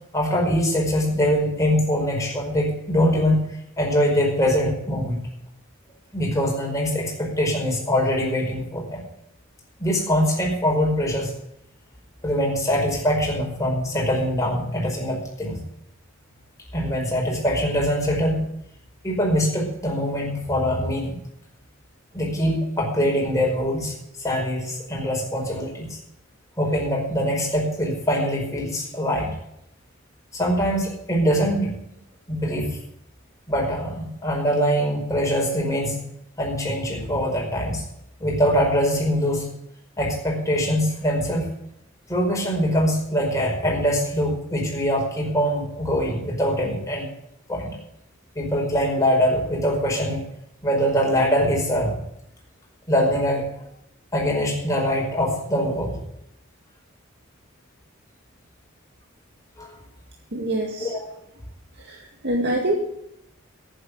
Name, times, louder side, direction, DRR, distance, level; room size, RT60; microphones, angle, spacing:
voice 1, 0.1-3.5 3.8-5.2 6.1-9.0 9.8-11.3 12.2-15.6 16.7-18.5 19.0-21.2 22.1-23.9 24.2-26.0 26.6-29.3 30.3-31.7 32.3-32.8 33.5-36.1 36.4-37.8 38.2-39.5 40.0-41.5 42.1-47.1 47.5-47.8 48.3-50.2 50.6-52.0 52.9-53.5 54.1-56.0 59.6-59.7 60.8-61.0, equal, 15° left, -2 dB, 4.9 m, -23 dB
voice 2, 60.3-60.9 61.9-62.0 62.2-62.8, right 1 dB, 55° right, -1 dB, 2.2 m, -24 dB
11.0 x 9.4 x 7.7 m, 0.79 s
head